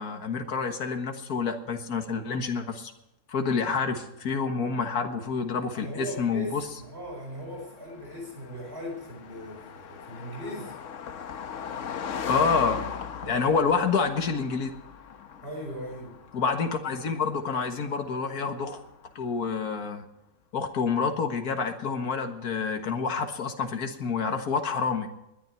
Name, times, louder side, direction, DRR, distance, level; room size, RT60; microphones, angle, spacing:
voice 1, 0.0-2.9 3.3-6.6 12.3-12.9 13.3-14.7 16.3-18.8 19.2-20.0 20.5-25.1, left 5 dB, 85° left, 5 dB, 2.0 m, -28 dB
Car passing by, 5.7-19.4, left 7 dB, 60° left, 1.2 m, -40 dB
voice 2, 5.7-10.8 13.2-13.5 15.4-16.2, equal, 40° right, 0 dB, 5.1 m, -39 dB
20.5 x 11.5 x 4.5 m, 0.88 s
omnidirectional pair, 1.6 m